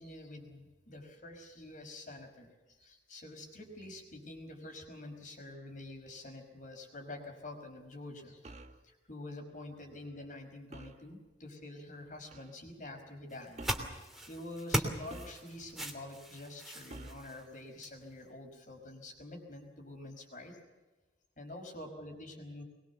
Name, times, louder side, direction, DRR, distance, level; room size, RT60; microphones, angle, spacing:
voice 1, 0.0-8.5 8.8-20.6 21.4-22.6, left 1 dB, 45° left, 4 dB, 5.3 m, -47 dB
sound 1, 8.4-8.8 10.7-11.1 12.3-12.5 13.6-14.0 15.1-15.8 16.9-17.3, right 1 dB, 40° right, 1.4 m, -49 dB
sound 2, 13.3-18.0, equal, ahead, 3.0 m, -39 dB
23.0 x 22.0 x 7.1 m, 1.2 s
head